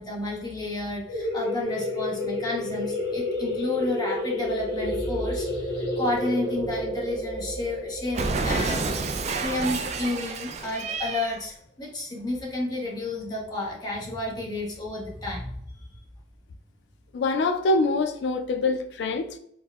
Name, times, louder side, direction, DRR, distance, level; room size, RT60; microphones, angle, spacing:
voice 1, 0.0-15.5, left 2 dB, 25° left, 0.7 m, -31 dB
sound 1, 1.1-10.4, left 1 dB, 65° left, 0.7 m, -30 dB
Cat, 8.1-11.4, right 3 dB, 40° right, 0.3 m, -29 dB
voice 2, 17.1-19.4, left 3 dB, 80° left, 0.3 m, -25 dB
4.4 x 2.0 x 2.3 m
head